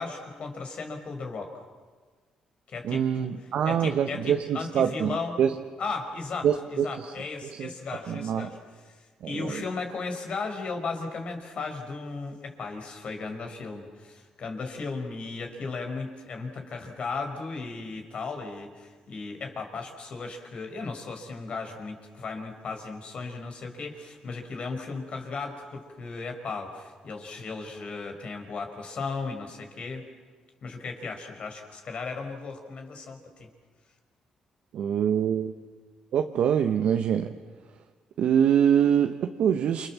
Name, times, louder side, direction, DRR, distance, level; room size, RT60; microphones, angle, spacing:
voice 1, 0.0-1.5 2.7-3.3 3.6-5.4 5.8-8.6 8.9-30.1 30.6-33.5, left 4 dB, 55° left, 5 dB, 5.4 m, -36 dB
voice 2, 2.8-5.5 6.4-7.1 7.6-7.7 8.1-8.5 9.2-9.6 34.7-35.5 36.1-37.3 38.2-39.9, right 8 dB, 70° right, 5 dB, 1.2 m, -24 dB
28.5 x 26.5 x 7.5 m, 1.5 s
supercardioid pair, 70°, 2 cm